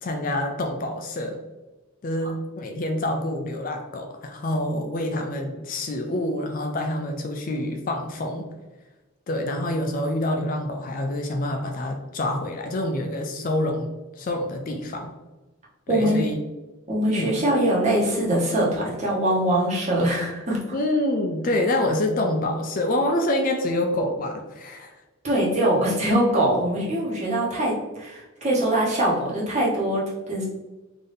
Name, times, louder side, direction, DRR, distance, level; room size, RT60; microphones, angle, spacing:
voice 1, 0.0-1.4 2.0-8.5 9.3-15.1 15.9-16.4 17.1-17.3 20.7-24.9, left 1 dB, 40° left, 4 dB, 0.4 m, -27 dB
voice 2, 15.9-16.3 16.9-20.6 25.2-30.5, right 1 dB, 30° right, -5 dB, 1.0 m, -23 dB
4.0 x 2.6 x 3.4 m, 1.1 s
head